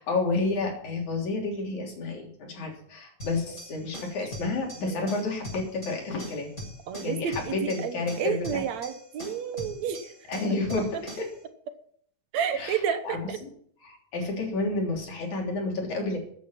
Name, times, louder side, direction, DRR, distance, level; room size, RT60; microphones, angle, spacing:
voice 1, 0.0-6.5 7.0-8.6 10.3-11.3 12.5-13.5 13.8-16.2, left 3 dB, 80° left, 0 dB, 4.7 m, -30 dB
sound 1, 3.2-11.4, equal, 20° left, 7.1 m, -42 dB
voice 2, 7.5-10.0 12.3-13.0 13.3-13.4, right 8 dB, 75° right, 9 dB, 2.3 m, -30 dB
14.5 x 9.1 x 5.8 m, 0.62 s
omnidirectional pair, 3.3 m